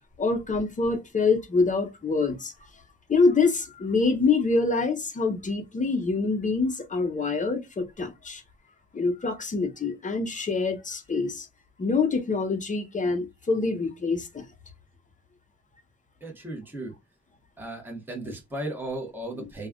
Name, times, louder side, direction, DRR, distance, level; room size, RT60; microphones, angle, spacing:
voice 1, 0.2-2.5 3.1-8.4 8.9-11.5 11.8-14.5 19.4-19.5, left 4 dB, 25° left, 0.7 m, -25 dB
voice 2, 16.2-16.9 17.6-19.7, right 1 dB, 5° right, 1.2 m, -35 dB
3.1 x 2.3 x 2.3 m
cardioid pair, 90°, 30 cm